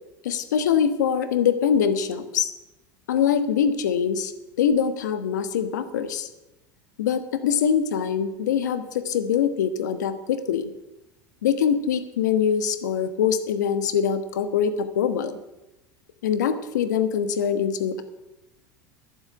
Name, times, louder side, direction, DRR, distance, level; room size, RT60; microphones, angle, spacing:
voice 1, 0.2-2.5 3.1-4.3 4.6-6.3 7.0-10.7 11.4-15.4 16.2-18.0, left 7 dB, 80° left, 11 dB, 1.3 m, -23 dB
11.5 x 8.1 x 9.1 m, 0.97 s
hypercardioid pair, 85°, 9 cm